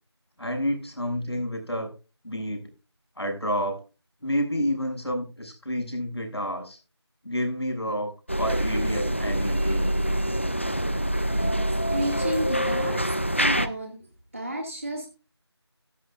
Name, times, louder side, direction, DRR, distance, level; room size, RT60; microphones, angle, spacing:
voice 1, 0.4-1.9 2.2-2.7 3.2-3.8 4.2-6.8 7.2-8.1 8.4-9.9, equal, 65° left, 4 dB, 6.6 m, -29 dB
sound 1, 8.3-13.7, equal, 25° left, 0.6 m, -25 dB
voice 2, 11.3-14.0 14.3-15.1, equal, 30° right, 2 dB, 2.0 m, -32 dB
15.5 x 11.0 x 2.5 m, 0.32 s
figure-of-eight pair, 175°, 14 cm